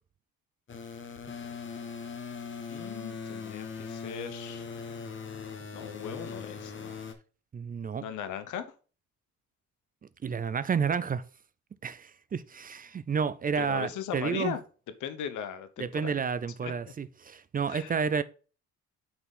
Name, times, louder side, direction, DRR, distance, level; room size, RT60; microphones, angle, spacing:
sound 1, 0.7-7.1, left 5 dB, 40° left, 1.3 m, -40 dB
voice 1, 2.7-4.6 5.7-7.0 8.0-8.7 13.6-14.6 15.0-16.2 16.6-16.7 17.7-17.9, left 9 dB, 75° left, 0.9 m, -38 dB
voice 2, 7.5-8.0 10.2-11.2 11.8-14.6 15.8-18.2, right 6 dB, 30° right, 0.4 m, -30 dB
5.9 x 4.0 x 5.3 m
cardioid pair, 90°, 30 cm